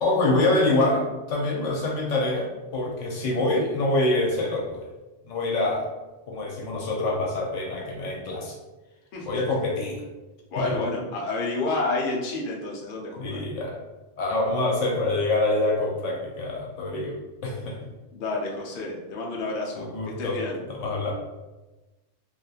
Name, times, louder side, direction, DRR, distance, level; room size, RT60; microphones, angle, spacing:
voice 1, 0.0-4.8 5.2-5.9 6.3-8.6 9.2-10.0 10.6-10.7 13.2-13.8 14.2-17.2 17.4-17.8 19.7-20.4 20.7-21.1, left 2 dB, 85° left, -2 dB, 1.0 m, -25 dB
voice 2, 10.5-13.4 18.1-19.9 20.2-20.6, left 3 dB, 55° left, -3 dB, 0.7 m, -29 dB
2.9 x 2.5 x 2.3 m, 1.1 s
omnidirectional pair, 1.2 m